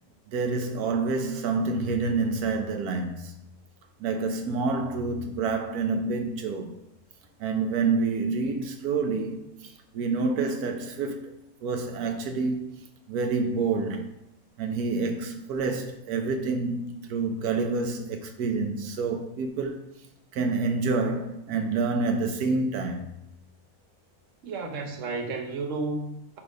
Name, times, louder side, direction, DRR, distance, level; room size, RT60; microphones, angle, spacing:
voice 1, 0.3-3.4 4.0-6.8 7.4-11.3 11.6-12.8 13.1-14.2 14.6-19.8 20.3-23.1, right 4 dB, 90° right, 1.3 m, -28 dB
voice 2, 24.4-26.4, right 3 dB, 60° right, 1.3 m, -32 dB
8.6 x 3.5 x 5.1 m
omnidirectional pair, 1.6 m